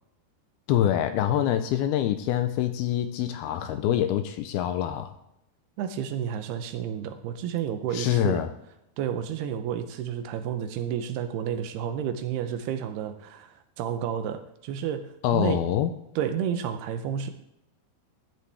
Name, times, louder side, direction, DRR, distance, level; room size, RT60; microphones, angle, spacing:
voice 1, 0.7-5.1 7.9-8.5 15.2-15.9, left 11 dB, 80° left, 9 dB, 2.4 m, -25 dB
voice 2, 5.8-8.4 9.0-15.6 16.2-17.3, right 9 dB, 80° right, 9 dB, 2.7 m, -31 dB
13.5 x 9.9 x 3.4 m, 0.81 s
omnidirectional pair, 4.8 m